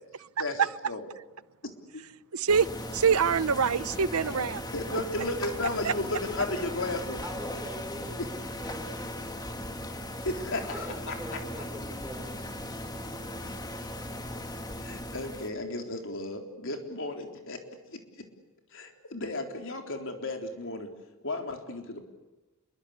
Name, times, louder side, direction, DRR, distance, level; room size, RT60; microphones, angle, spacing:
voice 1, 0.4-1.1 4.7-7.2 10.2-11.4 14.8-17.6 17.9-18.0 18.7-20.9 21.2-22.0, left 2 dB, 60° left, 4 dB, 3.9 m, -34 dB
voice 2, 2.3-2.7 2.9-4.6 5.8-5.9, right 6 dB, 80° right, 16 dB, 0.8 m, -24 dB
sound 1, 2.5-15.5, left 1 dB, 20° left, 2.0 m, -38 dB
voice 3, 7.2-9.4 10.7-12.5, equal, 10° right, 1 dB, 5.9 m, -43 dB
28.0 x 22.5 x 8.3 m, 1.1 s
head